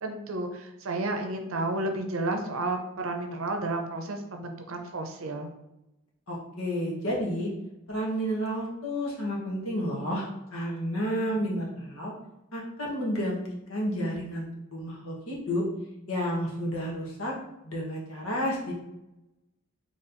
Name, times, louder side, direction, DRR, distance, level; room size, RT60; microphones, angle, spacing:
voice 1, 0.0-5.5, right 2 dB, 70° right, 4 dB, 0.6 m, -32 dB
voice 2, 6.3-7.5 7.9-12.1 12.5-15.7 16.1-17.3 17.6-18.8, equal, 80° left, -3 dB, 1.2 m, -31 dB
4.2 x 3.1 x 2.6 m, 0.92 s
head